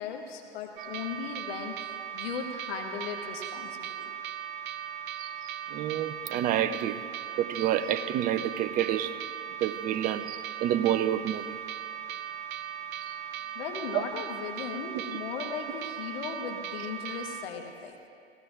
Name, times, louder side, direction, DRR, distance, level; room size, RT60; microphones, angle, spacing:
voice 1, 0.0-4.1 13.5-18.1, left 6 dB, 60° left, 3 dB, 1.4 m, -37 dB
sound 1, 0.8-17.5, right 10 dB, 45° right, 0.9 m, -38 dB
voice 2, 5.7-7.0 7.4-9.2 9.6-11.6 13.1-13.2 13.9-14.0, right 11 dB, 25° right, 12 dB, 0.5 m, -28 dB
19.0 x 16.5 x 2.6 m, 2.5 s
figure-of-eight pair, 95°, 34 cm